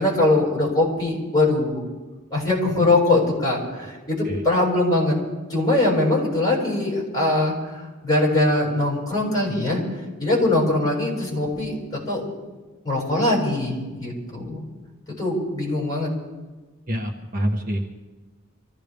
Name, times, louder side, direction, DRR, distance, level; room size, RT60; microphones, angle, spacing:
voice 1, 0.0-1.9 2.3-5.2 5.5-9.8 10.2-12.2 12.8-14.6 15.2-16.1, left 2 dB, 20° left, -3 dB, 6.3 m, -22 dB
voice 2, 16.9-18.0, equal, 40° right, 0 dB, 1.3 m, -26 dB
25.0 x 15.5 x 3.5 m, 1.3 s
head